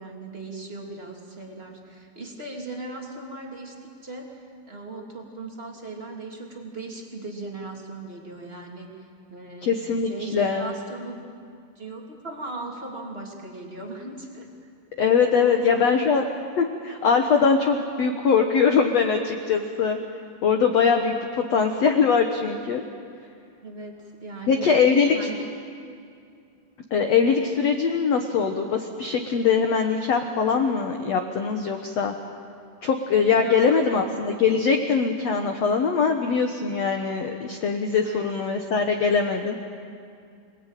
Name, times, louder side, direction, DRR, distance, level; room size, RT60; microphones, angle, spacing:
voice 1, 0.0-9.8 10.1-11.2 11.8-14.5 15.4-15.9 23.6-24.7 25.1-25.4 33.4-34.0 38.0-38.3, right 2 dB, 15° right, 0 dB, 2.6 m, -38 dB
voice 2, 9.6-10.7 15.0-16.3 16.6-20.0 20.4-22.8 24.5-25.1 26.9-32.1 32.8-39.6, left 5 dB, 75° left, 4 dB, 1.5 m, -22 dB
29.0 x 20.5 x 9.1 m, 2.4 s
omnidirectional pair, 4.9 m